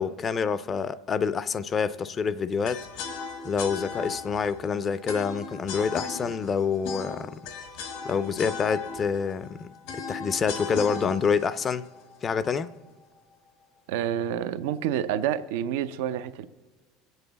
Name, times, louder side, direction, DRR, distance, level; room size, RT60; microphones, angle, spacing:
voice 1, 0.0-2.8 3.4-7.4 8.0-9.7 10.0-11.9 12.2-12.7, left 6 dB, 30° left, 0.4 m, -27 dB
sound 1, 2.6-12.7, left 5 dB, 80° left, 1.6 m, -37 dB
voice 2, 13.9-16.5, right 10 dB, 85° right, 0.5 m, -28 dB
23.0 x 8.0 x 4.0 m
supercardioid pair, 120°, 0 cm